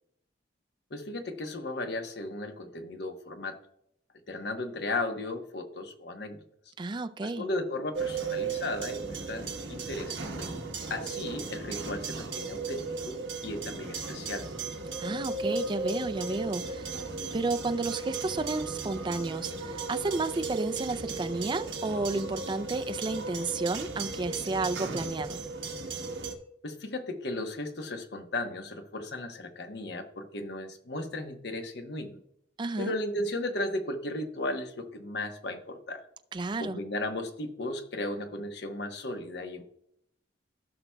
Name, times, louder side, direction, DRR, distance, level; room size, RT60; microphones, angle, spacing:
voice 1, 0.9-3.6 4.3-6.4 7.2-10.6 10.9-13.2 13.4-14.5 26.6-32.2 32.8-36.0 36.6-39.6, left 2 dB, 60° left, 1.0 m, -35 dB
voice 2, 6.8-7.5 15.0-16.9 17.3-25.4 32.6-32.9 36.3-36.8, right 3 dB, 25° right, 0.4 m, -32 dB
sound 1, 7.9-26.3, right 4 dB, 75° right, 1.2 m, -36 dB
15.5 x 5.9 x 2.3 m
head